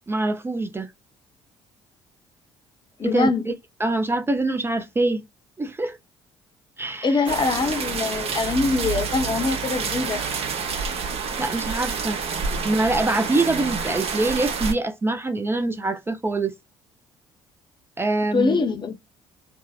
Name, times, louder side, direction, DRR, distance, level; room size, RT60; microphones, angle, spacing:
voice 1, 0.1-0.9 3.0-3.5 3.8-5.2 5.6-6.0 6.8-7.2 11.4-12.2 12.6-16.5 18.0-18.6, right 2 dB, 20° right, 0.4 m, -24 dB
voice 2, 3.0-3.5 7.0-10.2 18.3-18.9, left 3 dB, 35° left, 0.7 m, -23 dB
sound 1, 7.3-14.7, right 5 dB, 50° right, 0.8 m, -28 dB
2.6 x 2.1 x 2.3 m
hypercardioid pair, 55°, 13 cm